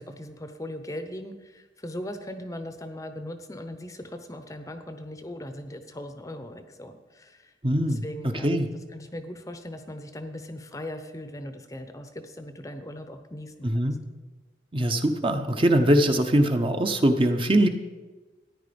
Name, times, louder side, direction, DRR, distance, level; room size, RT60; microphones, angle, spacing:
voice 1, 0.0-7.5 7.9-8.6 8.9-14.0, left 1 dB, 15° left, 8 dB, 0.7 m, -39 dB
voice 2, 7.6-8.7 13.6-14.0 14.7-17.7, right 1 dB, 30° right, 6 dB, 0.8 m, -22 dB
14.0 x 10.0 x 5.2 m, 1.2 s
head